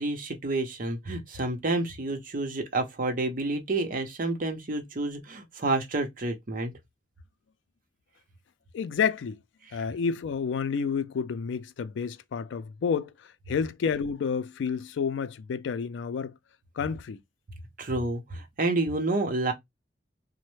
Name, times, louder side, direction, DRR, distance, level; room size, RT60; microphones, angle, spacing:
voice 1, 0.0-6.7 17.8-19.5, right 2 dB, 50° right, 0.7 m, -29 dB
voice 2, 8.7-9.4 9.7-13.1 13.5-16.3 16.8-17.2, left 6 dB, 80° left, 0.3 m, -29 dB
3.1 x 2.1 x 3.1 m
head